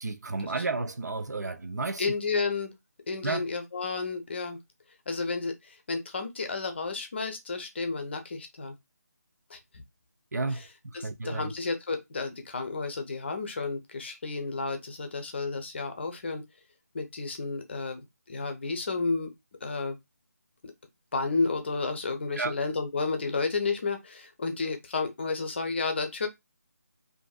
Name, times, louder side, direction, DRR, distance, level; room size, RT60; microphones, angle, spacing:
voice 1, 0.0-2.0 3.2-3.4 10.3-10.6 11.0-11.5 22.4-22.5, right 3 dB, 75° right, 0.5 m, -31 dB
voice 2, 2.0-2.8 3.1-4.6 5.1-8.7 9.5-9.8 10.5-10.7 10.9-16.4 16.9-19.3 19.6-20.0 21.1-26.3, left 4 dB, 40° left, 0.6 m, -32 dB
2.5 x 2.5 x 2.3 m
figure-of-eight pair, 160°, 9 cm